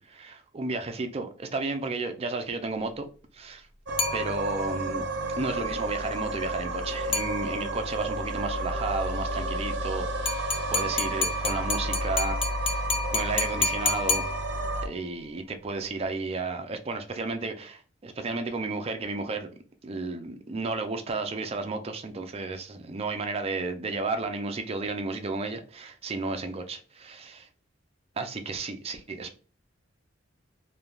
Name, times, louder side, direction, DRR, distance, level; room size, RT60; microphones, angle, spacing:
voice 1, 0.0-3.1 3.3-3.7 4.1-5.0 5.4-12.8 13.1-14.3 14.8-19.5 19.8-27.5 28.2-29.4, right 3 dB, 35° right, 0.4 m, -33 dB
sound 1, 3.9-14.9, right 1 dB, 70° right, 0.7 m, -31 dB
sound 2, 4.0-4.8 7.1-7.9 10.3-14.9, left 3 dB, 30° left, 0.4 m, -30 dB
3.2 x 2.2 x 2.4 m
head